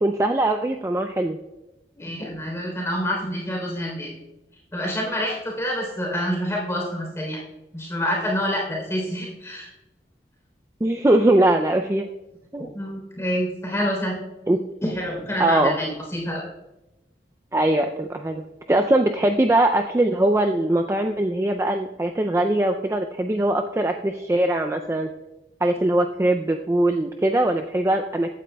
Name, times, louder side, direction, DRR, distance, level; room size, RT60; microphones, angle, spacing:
voice 1, 0.0-1.4 10.8-12.1 12.5-12.7 14.5-14.6 15.4-15.7 17.5-18.4 18.7-25.1 25.6-28.3, right 1 dB, 15° right, 4 dB, 0.3 m, -21 dB
voice 2, 2.0-4.1 4.7-7.4 7.7-9.7 12.7-14.2 14.8-16.4, equal, 15° left, -2 dB, 3.3 m, -27 dB
15.0 x 9.2 x 2.2 m, 0.99 s
head